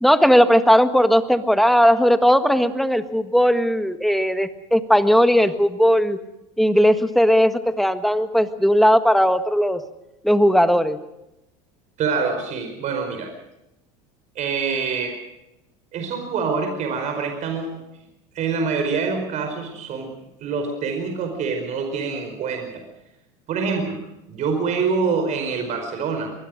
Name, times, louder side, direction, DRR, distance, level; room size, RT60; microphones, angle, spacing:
voice 1, 0.0-6.2 6.6-9.8 10.2-11.0, equal, ahead, 10 dB, 1.6 m, -17 dB
voice 2, 12.0-13.3 14.3-15.2 15.9-17.8 18.3-20.1 20.4-22.8 23.5-24.0 24.3-26.3, right 5 dB, 45° right, 5 dB, 4.9 m, -25 dB
23.5 x 20.5 x 6.5 m, 0.90 s
supercardioid pair, 105°, 16 cm